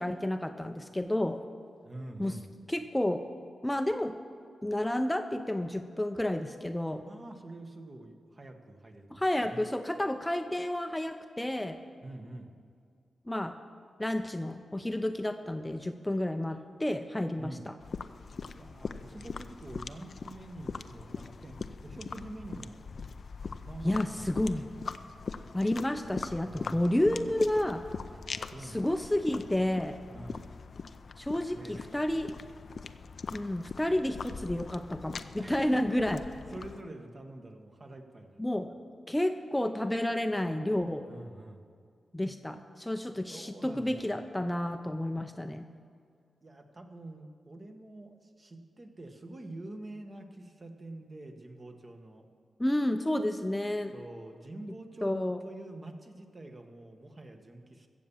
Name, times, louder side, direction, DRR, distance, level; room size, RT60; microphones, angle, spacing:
voice 1, 0.0-1.4 2.2-2.4 2.7-3.2 3.6-4.2 4.6-7.1 9.1-11.8 13.3-13.6 14.0-17.8 23.8-24.7 25.5-27.9 28.6-30.0 31.2-32.3 33.3-36.2 38.4-38.7 39.1-41.1 42.1-45.7 52.6-53.9 55.0-55.4, left 1 dB, 10° left, 7 dB, 0.7 m, -30 dB
voice 2, 1.8-2.5 7.1-9.7 12.0-12.6 17.4-17.7 18.5-22.8 23.6-24.7 26.5-26.9 28.1-28.8 30.1-30.5 31.5-32.0 35.4-35.8 36.5-38.4 41.1-41.7 43.3-44.2 46.4-52.3 53.9-57.9, right 1 dB, 35° right, 4 dB, 1.4 m, -46 dB
sound 1, 17.8-36.8, left 5 dB, 60° left, 0.5 m, -42 dB
15.5 x 7.2 x 7.2 m, 2.2 s
cardioid pair, 65°, 0 cm